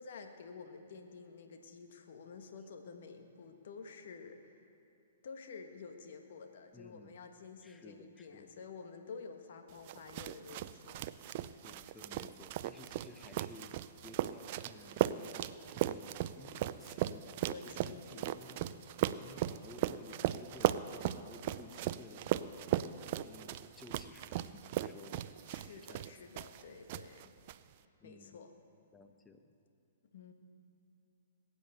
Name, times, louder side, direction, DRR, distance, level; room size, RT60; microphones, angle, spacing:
voice 1, 0.0-4.6 5.2-11.2 17.5-18.4 25.5-27.3 28.0-28.5 30.1-30.3, left 5 dB, 60° left, 6 dB, 1.4 m, -50 dB
voice 2, 6.7-7.2 7.6-8.5 11.6-13.8 14.0-18.6 19.2-22.5 23.2-25.3 25.7-26.1 28.0-28.4 28.9-29.4, left 3 dB, 15° left, 7 dB, 1.1 m, -56 dB
sound 1, 9.9-26.6 26.9-27.5, right 13 dB, 45° right, 0.5 m, -37 dB
20.5 x 9.3 x 6.7 m, 2.7 s
hypercardioid pair, 120°, 0 cm